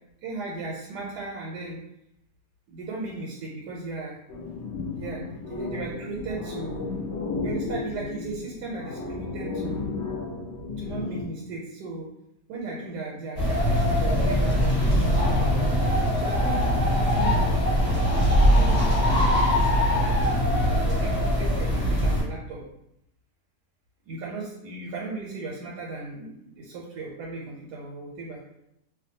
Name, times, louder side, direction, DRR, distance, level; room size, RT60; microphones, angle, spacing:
voice 1, 0.2-1.8 2.7-4.2 4.9-7.0 7.4-9.9 10.8-12.1 12.5-15.8 16.2-16.7 17.0-17.4 18.4-22.6 24.0-28.4, right 3 dB, 85° right, -3 dB, 1.2 m, -36 dB
sound 1, 4.3-11.2, left 3 dB, 65° left, 0.7 m, -33 dB
sound 2, 13.4-22.2, equal, 30° left, 1.1 m, -22 dB
2.5 x 2.2 x 2.7 m, 0.80 s
omnidirectional pair, 1.7 m